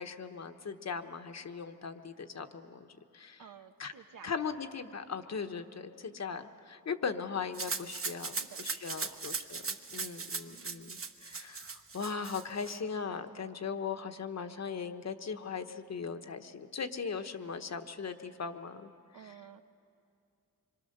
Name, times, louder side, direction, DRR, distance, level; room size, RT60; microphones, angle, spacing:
voice 1, 0.0-2.9 3.1-3.4 3.8-3.9 4.2-18.9 19.2-19.4, left 5 dB, 55° left, 8 dB, 1.0 m, -39 dB
voice 2, 3.4-4.3 6.0-6.2 8.3-9.2 10.0-10.9 19.1-19.6, right 8 dB, 80° right, 7 dB, 1.1 m, -54 dB
Rattle (instrument), 7.5-12.8, right 4 dB, 45° right, 1.1 m, -39 dB
26.0 x 23.5 x 6.6 m, 2.4 s
wide cardioid pair, 110°, 32 cm